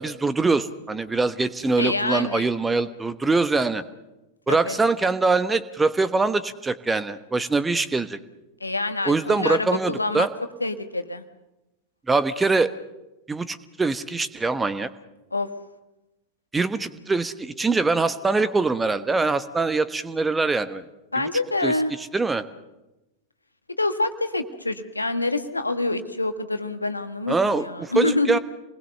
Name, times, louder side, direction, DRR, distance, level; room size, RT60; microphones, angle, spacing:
voice 1, 0.0-3.8 4.5-8.2 9.0-10.3 12.1-12.7 13.3-14.9 16.5-20.8 21.2-21.3 21.6-21.7 22.1-22.4 27.3-28.4, right 3 dB, 10° right, 13 dB, 1.1 m, -23 dB
voice 2, 1.8-2.5 4.5-4.7 8.6-10.3 10.6-11.2 15.3-15.5 21.1-21.9 23.8-28.4, left 2 dB, 80° left, 9 dB, 1.4 m, -26 dB
27.0 x 20.5 x 6.7 m, 1.0 s
figure-of-eight pair, 90°, 0 cm